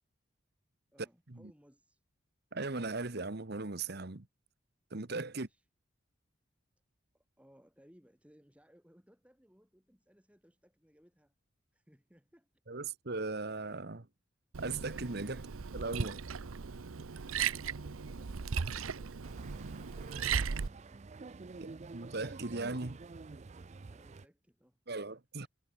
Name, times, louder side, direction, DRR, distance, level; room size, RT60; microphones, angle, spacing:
voice 1, 0.9-2.0 5.3-5.7 7.1-11.3 11.7-12.5 23.6-24.8 25.1-25.2, equal, 5° right, 4.6 m, -65 dB
voice 2, 2.5-4.3 4.9-5.5 12.7-14.1 14.6-15.4 15.7-16.2 21.6-23.0 24.9-25.5, right 3 dB, 50° right, 1.3 m, -38 dB
Liquid, 14.5-20.7, right 6 dB, 85° right, 0.7 m, -37 dB
sound 1, 19.2-24.2, right 3 dB, 35° right, 0.4 m, -48 dB
head